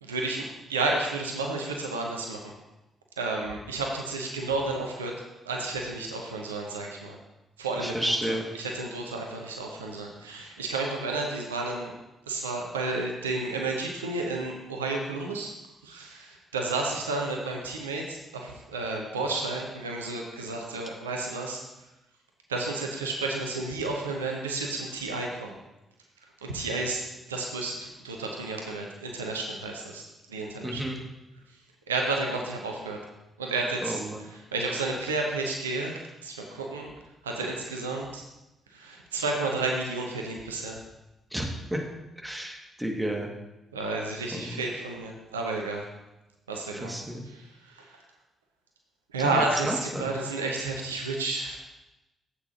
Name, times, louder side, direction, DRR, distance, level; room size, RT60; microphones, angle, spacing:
voice 1, 0.0-2.5 3.2-5.1 5.4-7.2 7.6-11.9 12.3-15.5 15.8-21.6 22.5-25.6 26.4-27.0 27.3-30.8 31.9-33.0 33.4-36.9 37.2-38.2 38.7-40.8 43.7-45.8 46.5-47.0 47.2-48.0 49.1-51.6, right 3 dB, 80° right, 1 dB, 0.8 m, -31 dB
voice 2, 7.8-8.4 30.6-31.0 33.8-34.2 41.3-41.4 41.7-41.8 42.2-43.3 44.3-44.6 46.8-47.3 49.2-50.1, right 1 dB, 5° right, 0 dB, 2.0 m, -31 dB
12.5 x 8.2 x 2.9 m, 0.97 s
figure-of-eight pair, 40°, 0 cm